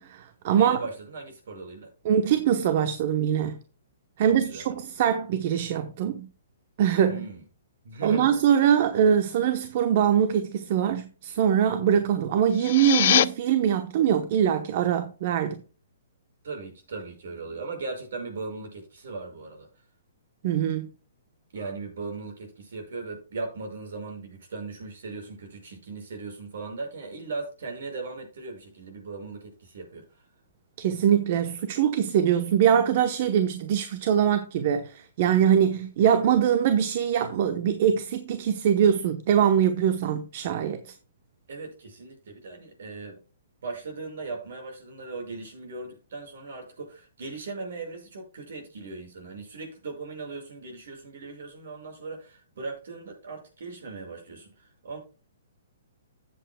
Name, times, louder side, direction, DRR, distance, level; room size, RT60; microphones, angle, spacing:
voice 1, 0.0-0.8 2.0-3.6 4.2-6.3 6.8-7.2 8.0-15.6 20.4-20.9 30.8-40.8, right 9 dB, 50° right, 0.9 m, -23 dB
voice 2, 0.5-1.9 4.2-4.6 7.0-7.4 7.8-8.3 16.4-19.7 21.5-30.3 41.5-43.2 43.6-55.0, right 3 dB, 70° right, 5.8 m, -38 dB
sound 1, 12.4-13.3, left 11 dB, 55° left, 0.5 m, -22 dB
14.0 x 8.0 x 2.2 m
hypercardioid pair, 140°, 0 cm